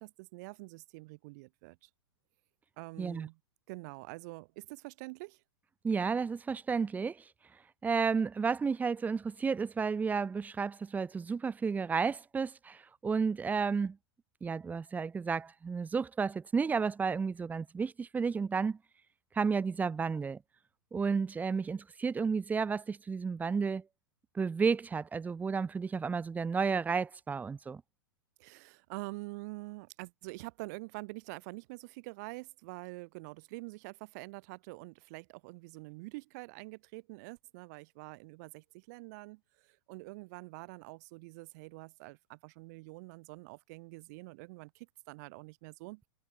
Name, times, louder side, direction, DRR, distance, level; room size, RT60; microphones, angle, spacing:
voice 1, 0.0-1.9 2.8-3.4 3.7-5.4 28.4-46.0, right 26 dB, 40° right, 1.8 m, -46 dB
voice 2, 5.8-7.2 7.8-14.0 14.4-18.8 19.3-20.4 20.9-23.8 24.4-27.8, right 5 dB, 10° right, 1.9 m, -32 dB
figure-of-eight pair, 105°, 13 cm